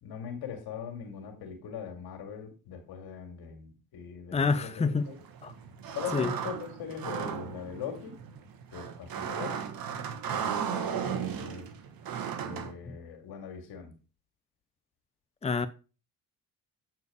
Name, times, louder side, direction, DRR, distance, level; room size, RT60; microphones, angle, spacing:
voice 1, 0.0-5.2 5.9-8.1 8.7-9.7 10.3-11.7 12.4-13.9, left 7 dB, 70° left, 2.4 m, -40 dB
voice 2, 4.3-5.1 5.4-5.5 6.1-6.3 12.9-13.0 15.4-15.7, left 4 dB, 15° left, 0.7 m, -27 dB
sound 1, 5.0-12.7, right 8 dB, 65° right, 1.5 m, -36 dB
8.2 x 4.6 x 5.0 m
hypercardioid pair, 55°, 38 cm